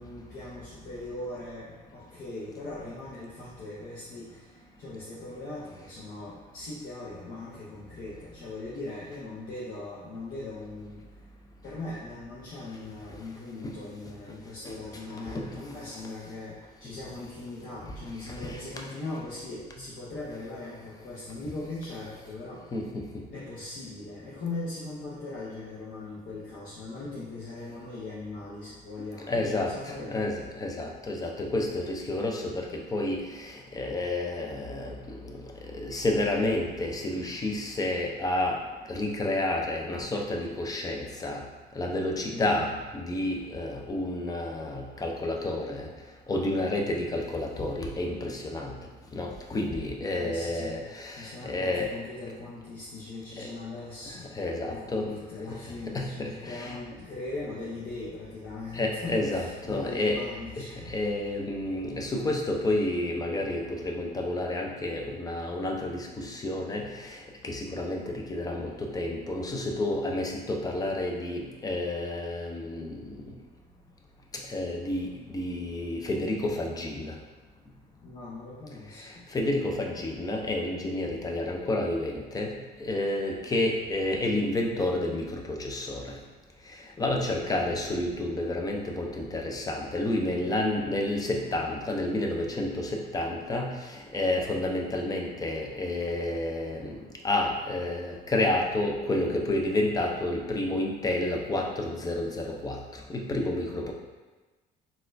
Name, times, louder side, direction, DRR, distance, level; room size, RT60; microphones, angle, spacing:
voice 1, 0.0-11.0 11.6-22.7 23.3-30.3 42.3-42.8 50.1-50.8 51.2-54.3 54.7-60.9 78.0-79.3 87.1-87.8 90.3-90.9, left 2 dB, 55° left, -8 dB, 0.7 m, -40 dB
voice 2, 22.7-23.0 29.3-34.9 35.2-35.4 35.7-38.6 38.9-41.4 41.8-45.9 46.3-48.7 49.1-51.9 53.4-53.5 54.1-55.1 55.5-55.6 55.9-56.8 58.7-60.2 60.6-67.2 67.4-73.0 74.5-77.1 79.0-82.5 82.8-86.1 87.0-96.9 97.2-102.8 103.1-103.9, left 1 dB, 20° left, 1 dB, 0.5 m, -30 dB
4.0 x 2.3 x 2.5 m, 1.2 s
cardioid pair, 110°, 17 cm